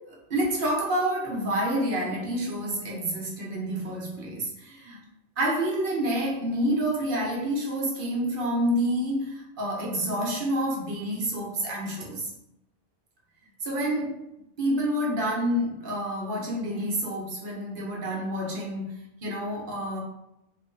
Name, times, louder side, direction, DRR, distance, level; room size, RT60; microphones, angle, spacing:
voice 1, 0.0-5.0 5.4-12.3 13.6-14.2 14.6-20.0, equal, 55° right, -2 dB, 0.9 m, -28 dB
3.0 x 2.5 x 3.7 m, 0.84 s
omnidirectional pair, 1.2 m